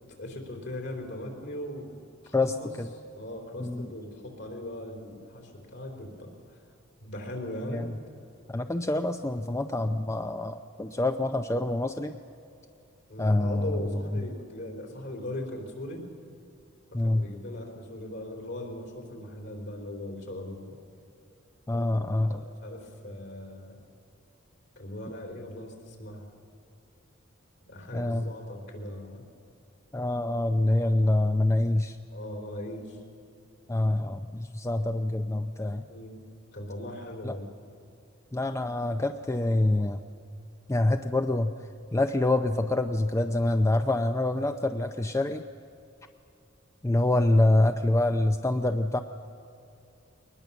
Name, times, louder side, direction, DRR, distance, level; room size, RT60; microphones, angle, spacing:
voice 1, 0.2-2.7 3.1-6.6 7.0-7.8 13.1-16.0 16.9-20.8 21.7-21.9 22.3-23.8 24.8-26.3 27.7-29.3 32.1-33.0 35.9-36.2 36.5-37.5, left 1 dB, 60° left, 3 dB, 3.9 m, -39 dB
voice 2, 2.3-2.9 3.6-3.9 7.7-8.0 8.5-12.1 13.2-14.3 16.9-17.3 21.7-22.4 27.9-28.3 29.9-32.0 33.7-35.8 37.2-37.3 38.3-40.0 40.7-41.5 41.9-45.4 46.8-49.0, left 2 dB, 15° left, 7 dB, 0.5 m, -26 dB
22.0 x 20.0 x 7.1 m, 2.6 s
head